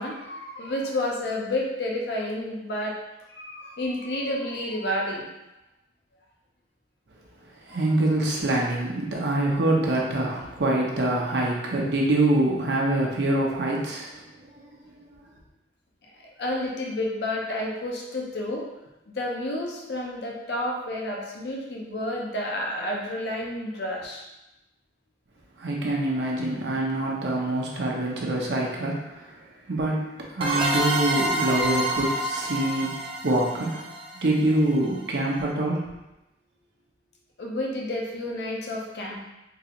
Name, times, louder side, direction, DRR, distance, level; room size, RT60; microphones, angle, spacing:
voice 1, 0.0-3.0 3.3-5.2 16.2-18.6 19.1-24.2 37.4-39.2, left 1 dB, 65° left, -1 dB, 0.6 m, -30 dB
voice 2, 7.7-14.1 14.6-14.7 25.6-29.4 29.7-30.0 30.3-33.9 34.2-35.9, right 1 dB, 75° right, -2 dB, 0.7 m, -25 dB
sound 1, 30.4-34.9, right 1 dB, 30° right, 0.4 m, -28 dB
3.8 x 2.4 x 2.9 m, 0.96 s
head